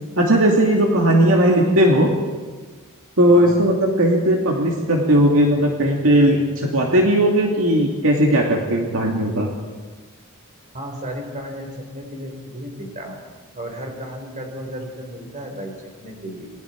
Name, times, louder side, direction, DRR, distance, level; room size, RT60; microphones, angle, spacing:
voice 1, 0.2-2.1 3.2-9.5, right 1 dB, 65° right, 0 dB, 2.5 m, -17 dB
voice 2, 10.7-13.2 13.5-16.5, equal, 35° right, 2 dB, 4.8 m, -34 dB
27.5 x 22.0 x 4.7 m, 1.4 s
head